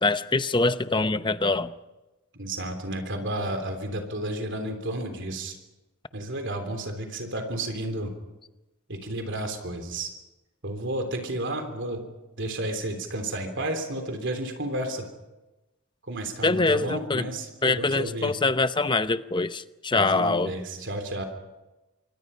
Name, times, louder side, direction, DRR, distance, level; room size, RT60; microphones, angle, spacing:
voice 1, 0.0-1.7 16.4-17.2 17.6-20.5, left 3 dB, 20° left, 12 dB, 0.8 m, -24 dB
voice 2, 2.4-5.6 6.1-8.1 8.9-10.1 10.6-12.0 12.4-15.1 16.0-18.4 19.9-21.2, right 1 dB, 55° right, 5 dB, 3.4 m, -32 dB
27.0 x 23.5 x 5.7 m, 1.1 s
head